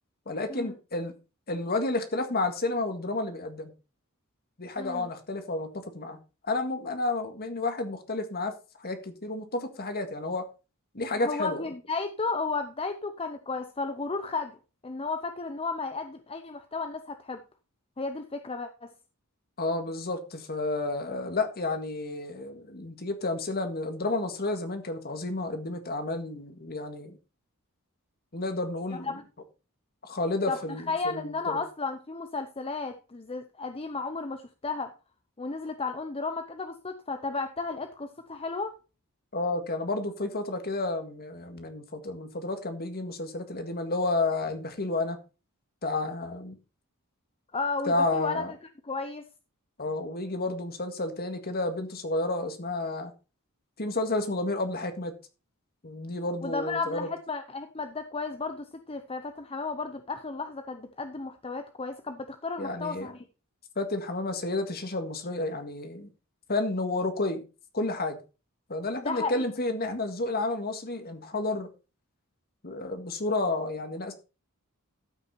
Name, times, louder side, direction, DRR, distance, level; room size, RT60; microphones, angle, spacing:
voice 1, 0.3-1.2 1.5-3.7 4.6-6.2 6.5-8.5 8.8-10.5 10.9-11.6 19.6-27.2 28.3-29.2 30.0-31.6 39.3-45.2 45.8-46.6 47.9-48.5 49.8-53.1 53.8-55.1 55.8-57.1 62.6-63.1 63.8-66.1 66.5-67.4 67.7-68.2 68.7-71.7 72.6-74.1, left 2 dB, 45° left, 1.8 m, -31 dB
voice 2, 4.8-5.1 11.2-14.6 14.8-17.4 18.0-18.9 28.9-29.1 30.5-30.6 30.9-34.9 35.4-38.7 47.5-48.6 48.8-49.3 56.4-63.2 69.0-69.5, left 4 dB, 25° left, 0.7 m, -33 dB
13.0 x 6.1 x 4.3 m
head